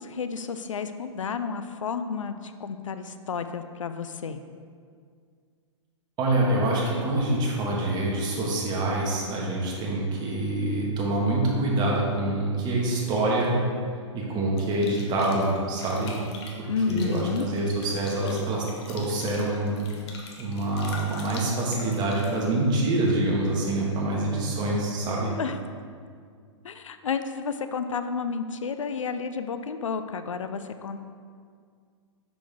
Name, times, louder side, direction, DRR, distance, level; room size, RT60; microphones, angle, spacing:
voice 1, 0.0-4.4 16.7-17.5 25.4-25.6 26.6-31.0, left 5 dB, 90° left, 10 dB, 0.5 m, -31 dB
voice 2, 6.2-13.6 14.1-16.2 16.6-19.8 20.4-25.3, right 2 dB, 25° right, -3 dB, 1.6 m, -26 dB
sound 1, 14.6-22.4, left 4 dB, 55° left, 1.2 m, -44 dB
6.7 x 6.0 x 3.5 m, 2.1 s
hypercardioid pair, 125°, 16 cm